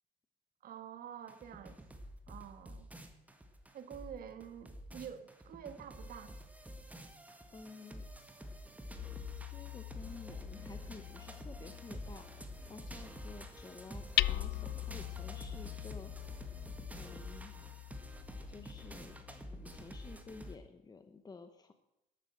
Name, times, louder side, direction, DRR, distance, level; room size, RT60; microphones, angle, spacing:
voice 1, 0.6-1.8 2.3-2.9 3.7-6.3, right 9 dB, 60° right, 10 dB, 1.4 m, -48 dB
sound 1, 1.3-20.5, equal, 10° right, 1.7 m, -49 dB
voice 2, 7.5-8.1 9.5-16.1 16.9-17.5 18.5-19.2 19.5-21.7, left 4 dB, 25° left, 8 dB, 0.9 m, -52 dB
Hammer, 9.0-20.7, left 18 dB, 75° left, 0.4 m, -42 dB
12.5 x 8.8 x 7.7 m, 0.93 s
cardioid pair, 110°, 17 cm